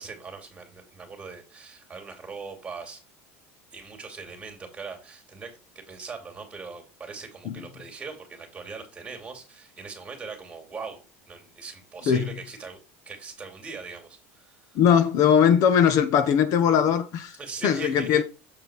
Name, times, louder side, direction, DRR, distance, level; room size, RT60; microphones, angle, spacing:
voice 1, 0.0-3.0 3.7-12.8 13.1-14.8 17.4-18.2, right 4 dB, 15° right, 2.6 m, -41 dB
voice 2, 14.7-17.4 17.6-18.2, left 8 dB, 55° left, 1.0 m, -20 dB
7.6 x 4.5 x 4.9 m
supercardioid pair, 125°, 7 cm